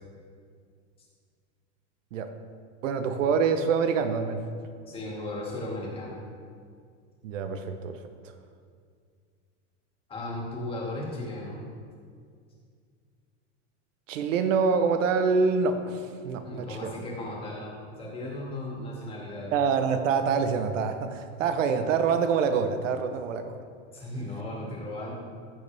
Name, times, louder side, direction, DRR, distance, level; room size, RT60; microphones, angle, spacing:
voice 1, 2.8-4.4 7.2-8.0 14.1-16.9 19.5-23.6, right 5 dB, 85° right, 8 dB, 1.0 m, -26 dB
voice 2, 4.9-6.1 10.1-11.6 16.4-19.5 23.9-25.1, left 1 dB, 15° left, -4 dB, 2.2 m, -36 dB
15.5 x 6.8 x 3.5 m, 2.1 s
supercardioid pair, 160°, 37 cm